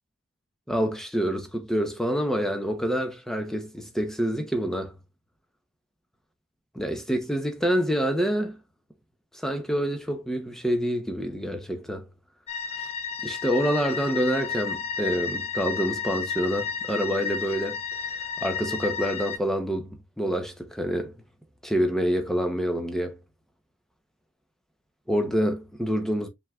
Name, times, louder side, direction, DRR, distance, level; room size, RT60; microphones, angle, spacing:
voice 1, 0.7-4.9 6.7-8.6 9.3-12.1 13.2-17.8 18.1-18.2 18.4-21.1 21.6-23.2 25.1-26.3, equal, ahead, 0.7 m, -27 dB
sound 1, 12.5-19.4, left 6 dB, 30° left, 0.4 m, -32 dB
5.3 x 3.5 x 2.3 m
head